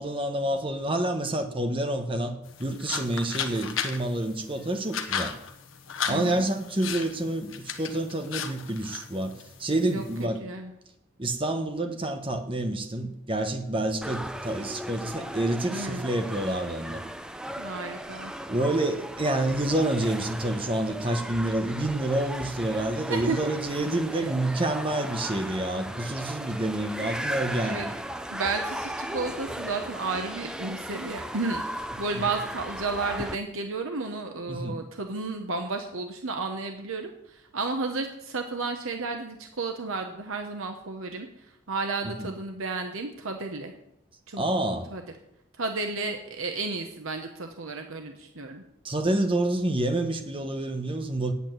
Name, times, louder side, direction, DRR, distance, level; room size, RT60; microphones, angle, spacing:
voice 1, 0.0-2.3 2.6-5.3 6.1-7.5 7.8-9.3 9.6-10.4 11.2-17.0 18.5-27.9 34.5-34.8 42.2-42.3 44.4-44.9 48.8-51.3, right 1 dB, 25° right, 1.1 m, -28 dB
sound 1, 2.4-10.3, left 7 dB, 65° left, 1.1 m, -36 dB
voice 2, 6.1-6.4 9.9-10.7 15.7-16.1 17.6-18.3 23.1-23.5 24.1-24.3 27.6-27.9 28.3-41.3 41.7-43.7 44.3-44.5 44.9-45.0 45.6-48.6, right 3 dB, 70° right, 1.0 m, -32 dB
sound 2, 14.0-33.4, right 1 dB, 5° right, 0.4 m, -36 dB
8.5 x 8.2 x 9.1 m
head